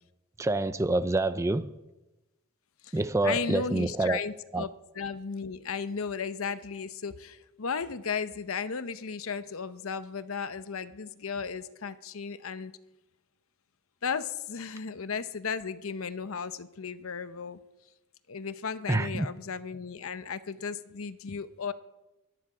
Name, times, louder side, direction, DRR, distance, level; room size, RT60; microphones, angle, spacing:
voice 1, 0.4-1.7 2.9-4.2 4.5-4.6 18.9-19.3, right 2 dB, 15° right, 0.4 m, -27 dB
voice 2, 2.8-4.7 4.9-12.7 14.0-17.6 18.3-21.7, left 5 dB, 70° left, 0.7 m, -35 dB
23.5 x 9.9 x 4.9 m
head